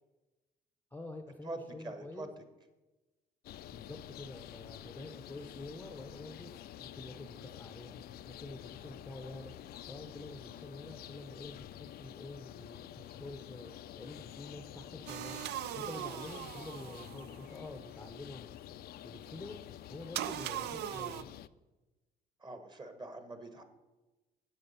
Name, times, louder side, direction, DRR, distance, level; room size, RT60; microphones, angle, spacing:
voice 1, 0.9-2.3 3.7-8.0 8.3-13.7 14.0-15.4 15.7-18.5 19.0-19.6 19.9-21.3, left 2 dB, 10° left, 7 dB, 0.7 m, -48 dB
voice 2, 1.4-2.3 22.4-23.6, right 2 dB, 25° right, 8 dB, 1.3 m, -44 dB
sound 1, 3.4-21.5, left 12 dB, 60° left, 0.4 m, -49 dB
sound 2, 15.1-17.5 20.1-21.2, right 13 dB, 70° right, 0.4 m, -40 dB
9.1 x 7.7 x 5.6 m, 1.1 s
cardioid pair, 95°, 18 cm